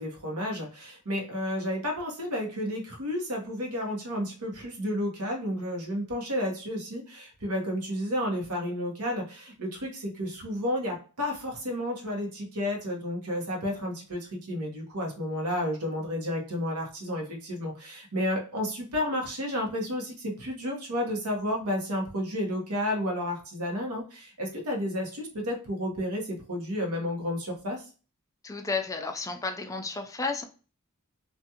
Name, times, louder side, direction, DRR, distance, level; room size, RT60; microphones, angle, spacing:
voice 1, 0.0-27.9, left 1 dB, 80° right, 0 dB, 1.0 m, -31 dB
voice 2, 28.4-30.4, left 4 dB, 15° left, 6 dB, 0.3 m, -32 dB
2.5 x 2.3 x 2.8 m, 0.36 s
head